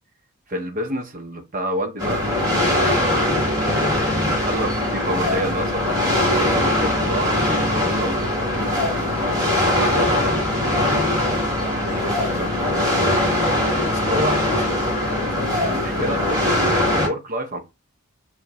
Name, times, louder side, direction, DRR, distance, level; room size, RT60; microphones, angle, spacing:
voice 1, 0.5-8.7 9.6-13.4 14.1-14.4 15.6-17.6, right 1 dB, 40° right, 0.7 m, -30 dB
sound 1, 2.0-17.1, left 1 dB, 15° right, 1.2 m, -21 dB
voice 2, 9.9-10.2 13.8-16.3, left 4 dB, 50° left, 0.6 m, -36 dB
5.0 x 2.1 x 2.8 m
head